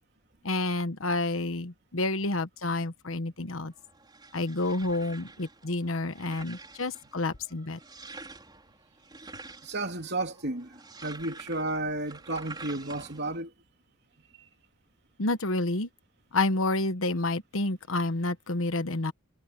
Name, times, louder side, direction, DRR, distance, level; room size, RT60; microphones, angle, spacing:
voice 1, 0.4-3.7 4.3-7.8 15.2-15.9 16.3-19.1, left 2 dB, 80° left, 1.3 m, -29 dB
sound 1, 3.7-13.4, right 3 dB, 20° right, 4.5 m, -48 dB
voice 2, 9.6-10.7 11.0-13.5, right 2 dB, 55° right, 3.2 m, -32 dB
head